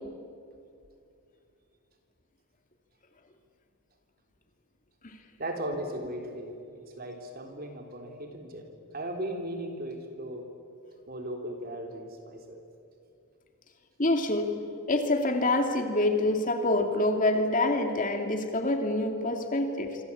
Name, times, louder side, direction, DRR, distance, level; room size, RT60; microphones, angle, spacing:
voice 1, 5.4-10.5 11.1-12.6, right 1 dB, 40° right, 3 dB, 3.7 m, -37 dB
voice 2, 14.0-14.5 14.9-20.0, left 2 dB, 35° left, 4 dB, 2.5 m, -26 dB
26.5 x 26.0 x 8.6 m, 2.5 s
head